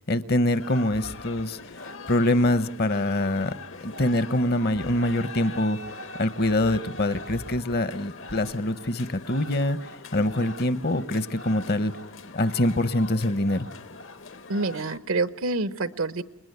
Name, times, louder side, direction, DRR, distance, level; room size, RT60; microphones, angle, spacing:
voice 1, 0.0-1.6 1.8-3.5 3.8-5.8 6.2-11.9 12.3-13.7, left 1 dB, 50° left, 14 dB, 0.9 m, -24 dB
sound 1, 0.5-15.0, left 3 dB, 65° left, 1.2 m, -42 dB
sound 2, 1.0-1.4 2.4-2.5 4.7-5.2 5.6-5.9 6.4-6.8 7.1-7.8 8.3-8.7, equal, 85° left, 1.8 m, -44 dB
voice 2, 14.5-16.2, right 3 dB, 80° right, 14 dB, 1.0 m, -27 dB
28.5 x 21.0 x 9.4 m, 0.88 s
head